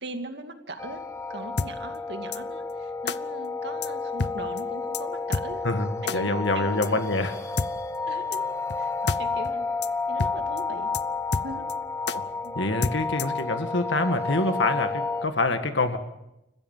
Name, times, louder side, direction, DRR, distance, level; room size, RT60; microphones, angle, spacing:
voice 1, 0.0-1.0 1.3-5.6 6.0-7.3 8.1-8.5 8.8-8.9 9.2-9.7 10.1-10.9 11.4-11.7 12.4-12.6, right 2 dB, 65° right, 5 dB, 2.3 m, -39 dB
sound 1, 0.8-15.3, left 4 dB, 15° left, 1.3 m, -31 dB
sound 2, 1.6-1.7 2.3-2.4 3.1-3.2 3.8-3.9 4.2-4.3 4.6-4.7 4.9-5.0 5.3-5.5 6.1-6.2 6.8-6.9 7.6-7.7 8.3-8.4 8.7-8.8 9.1-9.2 9.5-9.6 9.8-9.9 10.2-10.3 10.6-10.7 10.9-11.0 11.3-11.7 12.1-12.2 12.8-13.4, left 4 dB, 65° left, 0.8 m, -28 dB
voice 2, 5.6-7.3 12.1-12.3 12.6-16.0, left 2 dB, 80° left, 7 dB, 1.8 m, -26 dB
29.5 x 15.5 x 7.3 m, 0.88 s
head